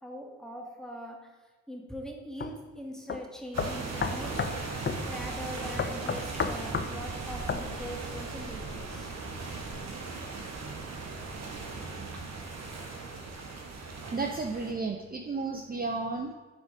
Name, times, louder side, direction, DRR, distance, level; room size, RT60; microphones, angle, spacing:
voice 1, 0.0-1.2 1.7-4.3 5.1-9.2, equal, ahead, 0 dB, 2.0 m, -42 dB
sound 1, 2.4-2.5 3.1-3.2 3.6-4.6 4.9-5.0 5.8-6.9 7.5-7.7, left 5 dB, 35° left, 0.8 m, -31 dB
sound 2, 3.5-14.7, right 3 dB, 50° right, 1.4 m, -38 dB
voice 2, 13.7-16.3, right 3 dB, 25° right, 3 dB, 0.8 m, -33 dB
9.1 x 4.0 x 5.1 m, 1.3 s
hypercardioid pair, 45°, 34 cm